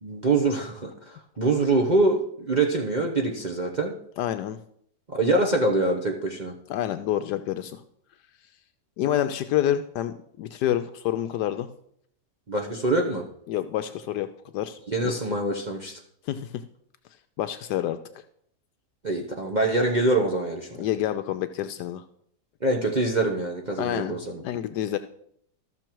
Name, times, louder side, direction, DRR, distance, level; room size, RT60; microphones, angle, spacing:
voice 1, 0.0-3.9 5.1-6.5 12.5-13.2 14.9-16.0 19.0-20.9 22.6-24.4, right 2 dB, 35° right, 0 dB, 0.8 m, -24 dB
voice 2, 4.2-4.6 6.7-7.8 9.0-11.7 13.5-14.3 14.5-15.1 16.3-16.6 17.4-18.0 20.8-22.0 23.8-24.2 24.4-25.0, left 11 dB, 80° left, 10 dB, 1.1 m, -28 dB
13.5 x 6.3 x 4.5 m, 0.68 s
omnidirectional pair, 1.8 m